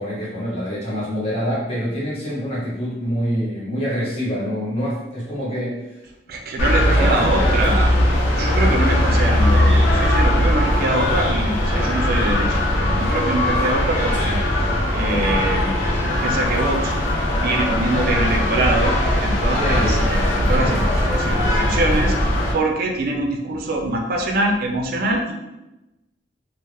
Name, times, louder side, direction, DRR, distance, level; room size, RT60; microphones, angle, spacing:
voice 1, 0.0-6.0 6.8-7.5 19.5-20.1 20.5-21.3, equal, 35° left, -7 dB, 0.8 m, -26 dB
voice 2, 6.3-7.9 8.4-16.9 17.3-20.8 21.1-22.2 22.5-25.3, right 2 dB, 55° right, 2 dB, 0.4 m, -24 dB
sound 1, 6.6-22.5, left 1 dB, 85° left, 0.5 m, -19 dB
2.2 x 2.0 x 3.0 m, 0.99 s
head